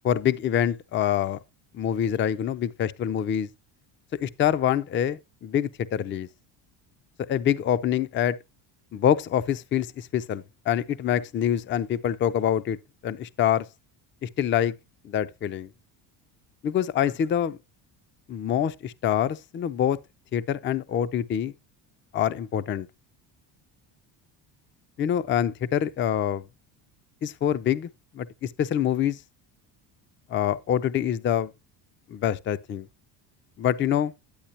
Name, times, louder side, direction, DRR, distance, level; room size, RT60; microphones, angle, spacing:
voice 1, 0.0-1.4 1.7-3.5 4.2-6.3 7.3-8.4 8.9-12.8 13.0-13.7 14.2-14.7 15.0-15.7 16.6-17.6 18.3-20.0 20.3-21.5 22.1-22.9 25.0-26.4 27.2-27.9 28.1-29.2 30.3-31.5 32.1-32.9 33.6-34.1, left 10 dB, 25° left, 0.4 m, -25 dB
10.0 x 8.3 x 2.8 m
cardioid pair, 125°, 48 cm